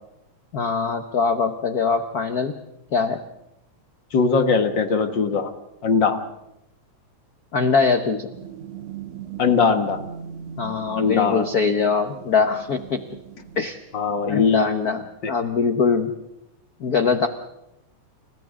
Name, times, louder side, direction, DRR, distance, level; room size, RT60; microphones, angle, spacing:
voice 1, 0.5-2.6 2.9-3.2 7.5-8.3 10.6-13.0 13.6-13.8 14.3-16.1 16.8-17.3, left 5 dB, 70° left, 7 dB, 0.8 m, -22 dB
voice 2, 4.1-5.5 5.8-6.2 9.4-10.0 11.0-11.5 13.9-14.8 15.2-15.3, left 5 dB, 45° left, 7 dB, 1.8 m, -20 dB
sound 1, 8.3-13.6, right 8 dB, 70° right, 2.2 m, -39 dB
30.0 x 29.5 x 3.8 m, 0.87 s
omnidirectional pair, 3.3 m